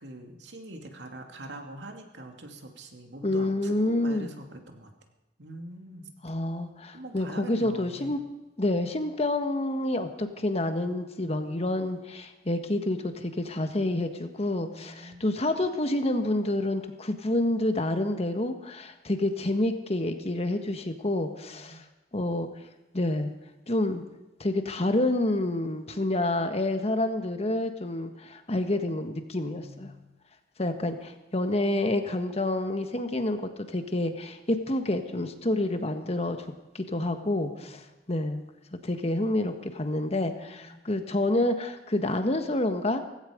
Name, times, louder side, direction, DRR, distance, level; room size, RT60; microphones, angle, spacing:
voice 1, 0.0-4.9 5.4-6.1 6.9-8.1 14.7-15.3 21.4-21.8 29.5-30.0 37.6-37.8 40.4-40.8, right 1 dB, 80° right, 3 dB, 2.5 m, -44 dB
voice 2, 3.2-4.3 6.2-8.2 8.6-21.8 22.1-22.5 22.9-23.3 23.7-24.0 24.4-29.9 30.6-36.4 36.7-38.4 38.8-43.0, left 1 dB, 35° left, 7 dB, 1.4 m, -28 dB
17.0 x 16.5 x 5.2 m, 1.0 s
head